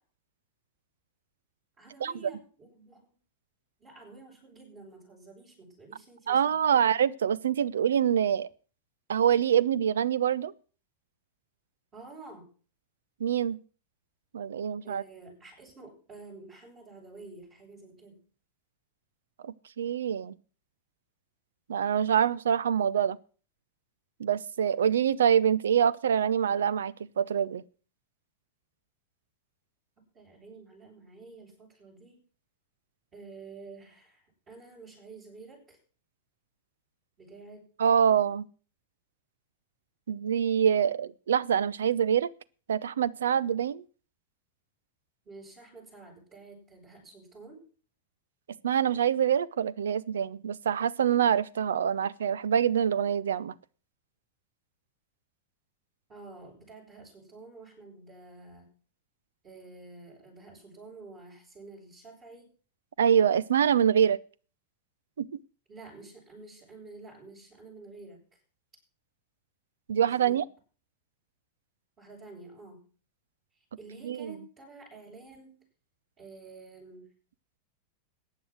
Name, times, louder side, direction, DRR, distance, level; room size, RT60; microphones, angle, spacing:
voice 1, 1.8-3.2 3.8-6.9 11.9-12.5 14.8-18.2 30.1-32.2 33.1-35.8 37.2-37.7 45.2-47.6 56.1-58.7 59.4-62.4 65.7-68.2 70.0-70.4 72.0-72.9 73.8-75.7 76.2-77.1, right 3 dB, 30° right, 7.8 m, -49 dB
voice 2, 6.3-8.5 9.1-10.5 13.2-13.6 14.3-15.0 19.4-20.3 21.7-23.2 24.2-27.6 37.8-38.5 40.1-42.3 42.7-43.8 48.6-53.5 63.0-64.2 65.2-65.4 69.9-70.4 74.0-74.3, right 8 dB, 65° right, 0.7 m, -25 dB
15.0 x 9.6 x 6.3 m
figure-of-eight pair, 90°, 0 cm